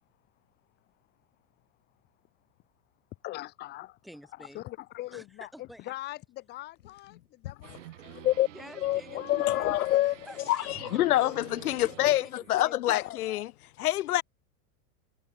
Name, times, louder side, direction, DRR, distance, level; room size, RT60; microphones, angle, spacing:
voice 1, 3.2-4.0 4.3-8.3 9.1-10.2, left 17 dB, 25° left, 2.6 m, -42 dB
voice 2, 4.0-4.6 5.1-5.2 5.5-5.9 8.5-11.0 11.6-11.8 12.2-13.5, equal, ahead, 2.9 m, -51 dB
sound 1, 7.6-12.6, right 16 dB, 55° right, 6.0 m, -49 dB
voice 3, 9.3-10.1 10.5-13.5 13.8-14.2, left 14 dB, 80° left, 1.3 m, -26 dB
supercardioid pair, 180°, 44 cm